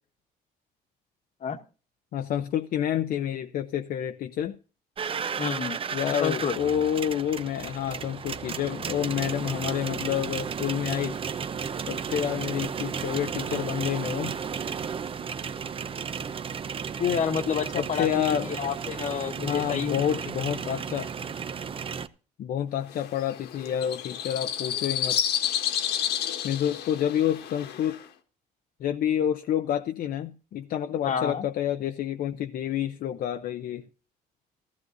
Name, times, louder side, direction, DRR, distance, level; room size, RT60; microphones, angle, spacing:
voice 1, 2.1-4.6 5.9-11.2 11.9-14.3 17.8-18.5 19.4-21.1 22.4-25.2 26.4-28.0 28.8-33.8, left 10 dB, 60° left, 0.7 m, -28 dB
sound 1, 5.0-22.1, right 6 dB, 30° right, 0.7 m, -33 dB
voice 2, 5.4-5.8 6.2-6.6 17.0-18.2 18.5-20.0 31.0-31.4, left 7 dB, 45° left, 1.2 m, -29 dB
sound 2, 22.9-28.0, left 10 dB, 80° left, 1.6 m, -30 dB
15.0 x 14.5 x 2.7 m
cardioid pair, 110°, 17 cm